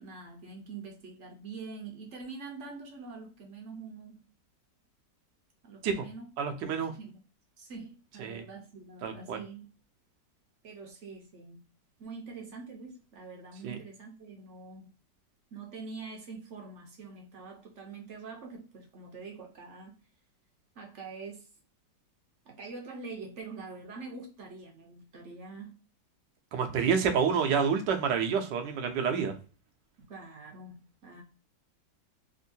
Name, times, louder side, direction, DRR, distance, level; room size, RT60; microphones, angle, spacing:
voice 1, 0.0-4.2 5.6-6.3 6.6-7.2 7.6-9.7 10.6-11.6 12.0-14.9 15.5-19.9 20.7-21.5 22.4-25.8 30.1-31.2, right 4 dB, 55° right, 1 dB, 0.9 m, -45 dB
voice 2, 6.4-6.9 8.2-8.4 9.0-9.4 13.6-13.8 26.5-29.3, right 6 dB, 75° right, 5 dB, 1.3 m, -28 dB
3.6 x 2.6 x 2.6 m, 0.35 s
omnidirectional pair, 2.0 m